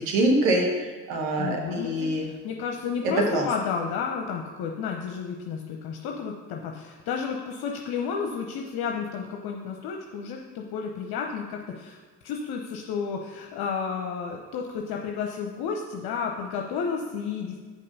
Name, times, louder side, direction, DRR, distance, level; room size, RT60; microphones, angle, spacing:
voice 1, 0.1-2.3 3.0-3.5, right 1 dB, 75° right, 0 dB, 1.2 m, -24 dB
voice 2, 1.4-12.0 12.2-17.6, left 6 dB, 65° left, 1 dB, 0.8 m, -32 dB
7.8 x 5.4 x 5.3 m, 1.5 s
hypercardioid pair, 40°, 40 cm